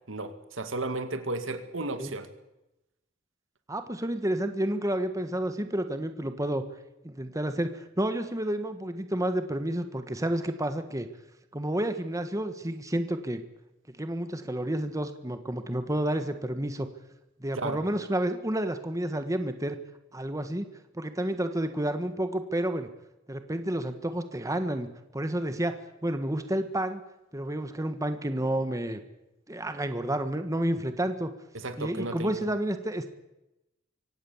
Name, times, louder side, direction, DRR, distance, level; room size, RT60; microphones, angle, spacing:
voice 1, 0.1-2.3 17.6-17.8 31.5-32.3, right 2 dB, 75° right, 9 dB, 2.1 m, -33 dB
voice 2, 3.7-6.6 7.0-11.1 11.5-13.4 14.0-16.9 17.4-19.8 20.1-20.7 20.9-22.9 23.3-24.9 25.1-27.0 27.3-29.0 29.5-31.3 31.8-33.1, right 1 dB, 15° right, 8 dB, 1.4 m, -30 dB
24.5 x 17.5 x 7.2 m, 0.94 s
head